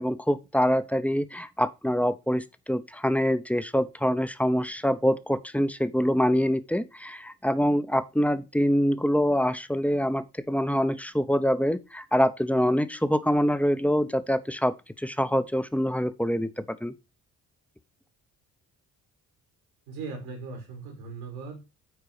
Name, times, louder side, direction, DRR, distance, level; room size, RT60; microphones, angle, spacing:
voice 1, 0.0-16.9, equal, 5° left, 0.8 m, -25 dB
voice 2, 19.9-21.7, right 4 dB, 80° right, 2.6 m, -39 dB
9.2 x 4.6 x 4.8 m
hypercardioid pair, 40°, 43 cm